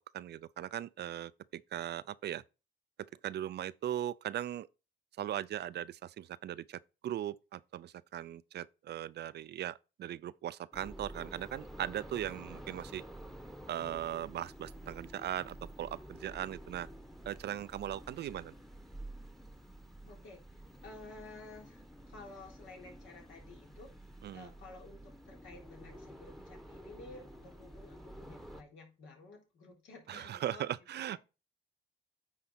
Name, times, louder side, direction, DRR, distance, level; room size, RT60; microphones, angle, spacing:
voice 1, 0.0-2.4 3.2-4.7 5.2-13.0 13.7-16.9 17.3-18.5 24.2-24.5 30.1-31.2, right 11 dB, 60° right, 0.5 m, -39 dB
sound 1, 10.7-28.6, right 1 dB, ahead, 1.1 m, -50 dB
voice 2, 20.0-23.9 24.3-30.7 30.9-31.2, left 3 dB, 75° left, 3.8 m, -53 dB
9.8 x 4.2 x 4.2 m
cardioid pair, 90°, 20 cm